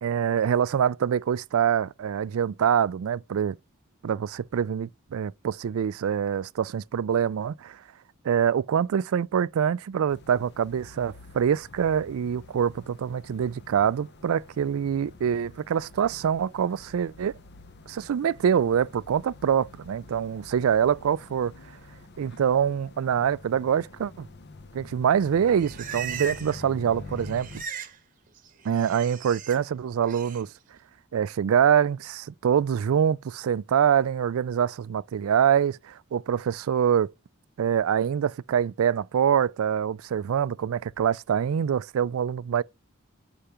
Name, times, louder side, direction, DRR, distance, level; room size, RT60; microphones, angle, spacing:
voice 1, 0.0-3.6 4.0-7.8 8.2-17.4 17.9-21.5 22.2-24.3 24.7-27.5 28.6-30.5 31.1-37.1 37.6-42.6, right 8 dB, 80° right, 0.3 m, -25 dB
sound 1, 10.1-27.6, left 3 dB, 50° left, 0.7 m, -47 dB
Livestock farm animals working animals, 25.2-26.7 26.9-28.0 28.3-29.6 30.0-30.4, right 6 dB, 40° right, 1.0 m, -38 dB
5.6 x 5.0 x 5.6 m
head